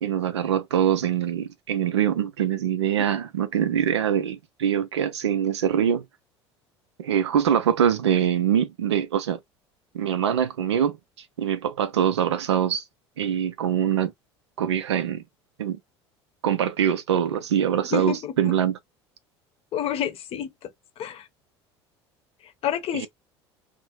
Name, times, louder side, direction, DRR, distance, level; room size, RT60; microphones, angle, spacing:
voice 1, 0.0-6.0 7.0-9.4 9.9-11.0 11.4-12.8 13.2-14.1 14.6-15.2 15.6-15.8 16.4-18.8 22.9-23.1, right 9 dB, 75° right, 0.4 m, -23 dB
voice 2, 17.9-18.5 19.7-20.5 21.0-21.3 22.4-23.1, left 9 dB, 45° left, 0.7 m, -29 dB
2.6 x 2.0 x 2.9 m
figure-of-eight pair, 65°, 14 cm